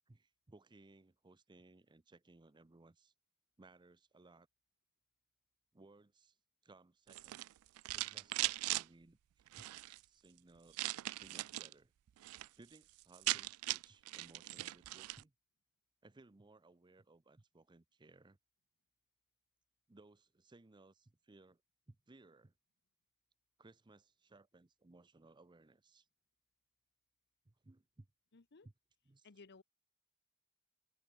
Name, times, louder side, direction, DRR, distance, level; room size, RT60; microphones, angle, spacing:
voice 1, 0.1-3.1 3.6-4.5 5.7-6.4 6.6-7.5 7.9-10.8 11.2-11.9 12.3-15.3 16.0-18.4 19.9-21.6 21.9-22.5 23.6-26.1 27.5-28.1 28.6-28.7 29.1-29.3, right 2 dB, 20° right, 0.6 m, -62 dB
sound 1, 7.1-8.8 9.5-10.0 10.7-11.7 12.1-12.5 12.7-12.8 13.0-15.2, right 19 dB, 80° right, 0.3 m, -39 dB
voice 2, 28.3-28.7 29.2-29.6, left 4 dB, 55° left, 0.9 m, -58 dB
head